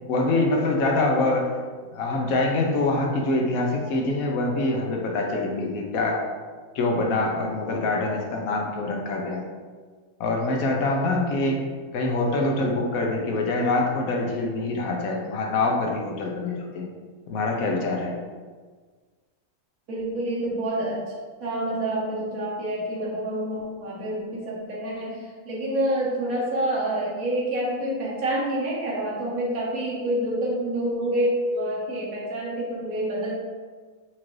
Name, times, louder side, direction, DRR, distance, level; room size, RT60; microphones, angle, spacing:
voice 1, 0.1-1.5 1.9-6.2 6.7-9.4 10.2-11.7 11.9-16.9 17.3-18.2, left 2 dB, 80° left, 0 dB, 1.1 m, -25 dB
voice 2, 19.9-21.0 21.4-33.4, right 1 dB, 80° right, -5 dB, 1.4 m, -27 dB
4.5 x 2.5 x 3.0 m, 1.5 s
omnidirectional pair, 1.5 m